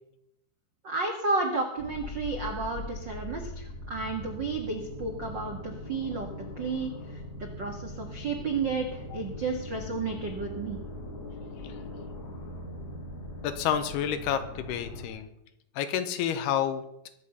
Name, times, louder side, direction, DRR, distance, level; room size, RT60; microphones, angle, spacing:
voice 1, 0.8-6.3 6.6-10.8, right 4 dB, 65° right, 3 dB, 1.1 m, -32 dB
sound 1, 1.8-15.1, left 2 dB, 35° left, 1.7 m, -41 dB
voice 2, 13.4-15.3 15.8-17.1, left 9 dB, 80° left, 10 dB, 2.9 m, -30 dB
22.0 x 8.3 x 5.6 m, 0.80 s
omnidirectional pair, 4.7 m